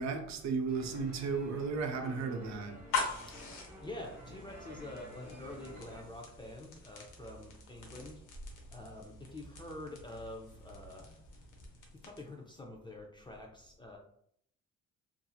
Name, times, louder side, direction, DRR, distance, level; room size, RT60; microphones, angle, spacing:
voice 1, 0.0-2.8, right 4 dB, 65° right, 0.6 m, -34 dB
sound 1, 0.7-6.0, equal, 5° right, 1.2 m, -52 dB
sound 2, 2.7-12.4, left 4 dB, 80° left, 0.8 m, -43 dB
voice 2, 3.3-8.2 8.7-11.3 12.0-14.0, left 2 dB, 15° left, 0.5 m, -47 dB
2.7 x 2.5 x 2.3 m
cardioid pair, 90°, 30 cm